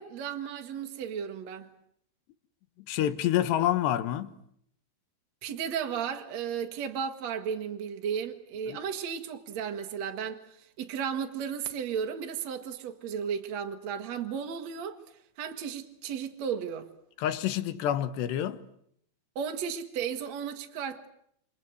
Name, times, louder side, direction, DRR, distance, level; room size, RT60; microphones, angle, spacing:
voice 1, 0.0-1.7 5.4-15.0 15.4-16.9 19.4-21.1, right 7 dB, 55° right, 2.2 m, -34 dB
voice 2, 2.9-4.3 8.7-8.8 17.2-18.6, left 11 dB, 80° left, 3.5 m, -28 dB
28.5 x 26.5 x 7.8 m
omnidirectional pair, 4.9 m